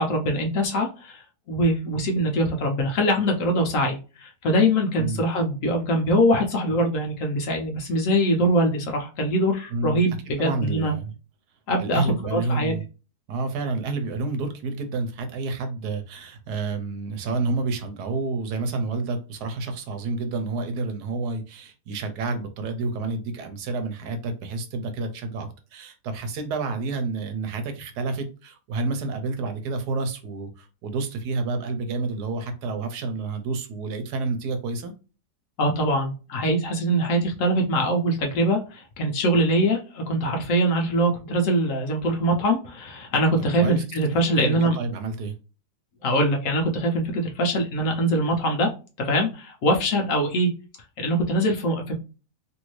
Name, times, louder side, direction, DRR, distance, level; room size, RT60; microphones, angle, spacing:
voice 1, 0.0-10.9 11.7-12.7 35.6-44.8 46.0-48.7 49.0-50.5 51.0-51.9, equal, 65° left, 2 dB, 1.0 m, -23 dB
voice 2, 9.7-10.0 10.4-11.1 11.8-12.8 13.3-34.9 43.6-43.8 44.1-45.4, right 3 dB, 85° right, 7 dB, 1.3 m, -29 dB
3.0 x 2.6 x 3.0 m, 0.33 s
omnidirectional pair, 1.7 m